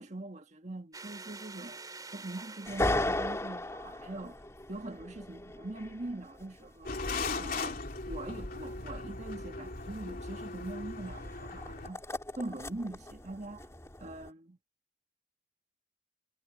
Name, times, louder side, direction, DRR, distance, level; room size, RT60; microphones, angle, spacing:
voice 1, 0.0-1.8 2.1-4.4 4.7-7.0 7.3-12.0 12.4-13.7 14.0-14.6, right 2 dB, 40° right, 1.7 m, -42 dB
sound 1, 0.9-3.5, right 4 dB, 20° right, 4.8 m, -47 dB
sound 2, 2.6-7.3 11.3-14.3, left 1 dB, 15° left, 2.4 m, -37 dB
sound 3, 6.8-11.9, left 3 dB, 55° left, 3.0 m, -38 dB
head